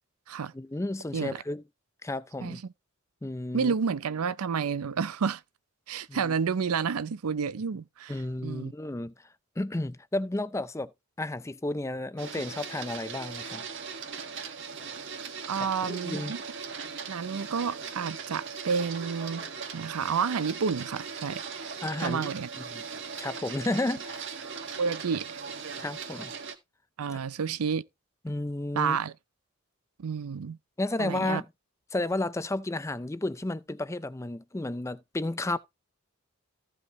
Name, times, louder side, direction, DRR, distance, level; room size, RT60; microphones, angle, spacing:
voice 1, 0.5-1.6 2.0-2.6 3.2-3.7 6.1-6.3 8.1-9.1 9.6-10.9 11.2-13.6 15.8-16.3 21.8-22.3 22.7-22.8 23.2-24.3 25.8-26.3 27.1-27.2 28.2-29.0 30.8-31.5 31.9-35.6, left 2 dB, 15° left, 0.4 m, -32 dB
voice 2, 3.5-5.4 5.9-8.1 8.4-8.7 15.5-16.4 17.1-19.5 19.7-22.5 24.8-25.4 27.0-27.8 28.7-29.1 30.0-30.6 31.0-31.4, right 6 dB, 85° right, 0.5 m, -30 dB
Printer, 12.2-26.5, right 5 dB, 55° right, 1.6 m, -39 dB
15.0 x 5.5 x 3.0 m
head